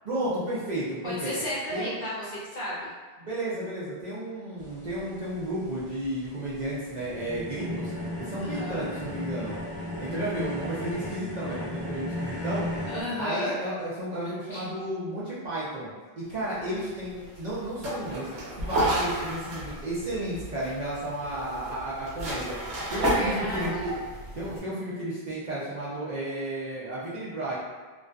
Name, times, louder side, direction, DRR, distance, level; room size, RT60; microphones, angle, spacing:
voice 1, 0.0-1.3 1.7-1.9 3.2-9.5 10.0-12.7 13.2-15.9 16.2-18.3 18.6-23.9 24.4-27.6, right 1 dB, 55° right, -8 dB, 0.6 m, -32 dB
voice 2, 1.0-2.3 2.5-2.9 8.4-8.9 12.9-13.6 14.5-14.7 23.1-23.8, left 1 dB, 55° left, -7 dB, 0.6 m, -33 dB
sound 1, 4.6-13.0, left 1 dB, 25° right, 1.0 m, -35 dB
sound 2, 16.3-24.6, right 1 dB, 70° right, 0.9 m, -32 dB
2.5 x 2.3 x 2.2 m, 1.4 s
omnidirectional pair, 1.1 m